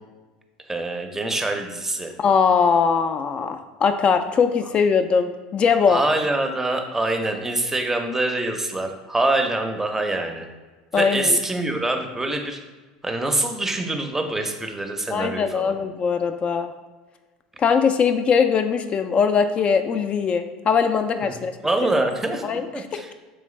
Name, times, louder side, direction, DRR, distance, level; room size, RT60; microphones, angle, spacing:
voice 1, 0.7-2.1 5.9-10.5 11.0-12.6 13.0-15.8 21.2-21.4 21.6-23.1, right 2 dB, 10° right, 5 dB, 0.6 m, -25 dB
voice 2, 2.2-6.0 10.9-11.4 15.1-16.7 17.6-21.5 22.4-22.6 22.9-23.0, left 6 dB, 35° left, 8 dB, 0.3 m, -21 dB
3.8 x 3.3 x 3.2 m, 1.3 s
hypercardioid pair, 85°, 3 cm